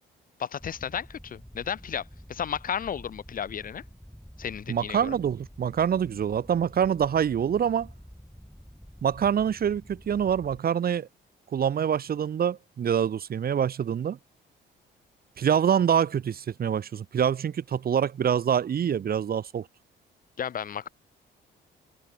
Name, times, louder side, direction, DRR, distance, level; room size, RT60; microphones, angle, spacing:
voice 1, 0.4-3.8 4.4-5.2 20.4-20.9, left 8 dB, 45° left, 0.7 m, -33 dB
sound 1, 0.6-10.6, equal, ahead, 1.6 m, -49 dB
voice 2, 4.7-7.9 9.0-11.1 11.5-14.2 15.4-19.7, right 8 dB, 50° right, 1.2 m, -25 dB
cardioid pair, 90°, 20 cm